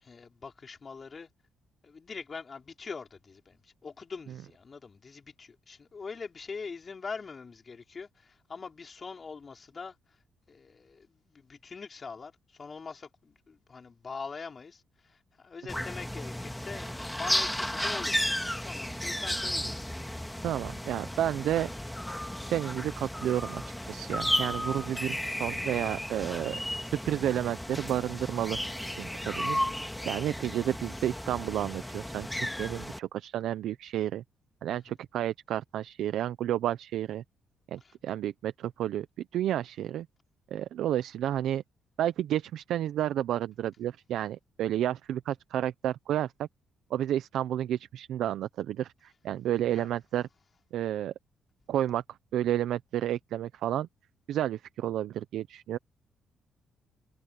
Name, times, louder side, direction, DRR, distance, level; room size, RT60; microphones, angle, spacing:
voice 1, 0.0-1.3 1.8-10.0 10.5-18.3 18.6-19.9 34.7-35.0 37.8-37.9 49.7-49.9, left 5 dB, 35° left, 5.1 m, -43 dB
african gray parrot, 15.7-33.0, left 1 dB, 5° left, 1.9 m, -34 dB
voice 2, 20.4-21.7 22.5-26.6 26.9-28.6 28.9-34.2 34.6-37.2 37.7-39.1 39.3-40.1 40.5-41.6 42.0-46.5 46.9-50.3 50.7-51.1 51.7-52.0 52.3-53.9 54.3-55.8, right 12 dB, 80° right, 0.7 m, -31 dB
cardioid pair, 90°, 0 cm